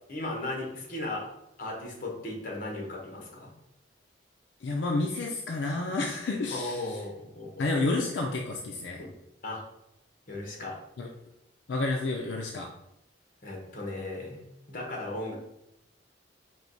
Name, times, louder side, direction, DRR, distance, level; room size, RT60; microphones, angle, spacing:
voice 1, 0.1-1.3 1.6-3.5 6.5-7.7 9.0-9.1 9.4-9.6 10.3-10.8 13.4-15.4, left 2 dB, 50° left, -1 dB, 1.1 m, -36 dB
voice 2, 4.6-7.0 7.6-9.0 11.0-11.1 11.7-12.7, left 2 dB, 85° left, 1 dB, 0.5 m, -30 dB
4.6 x 2.3 x 3.9 m, 0.86 s
head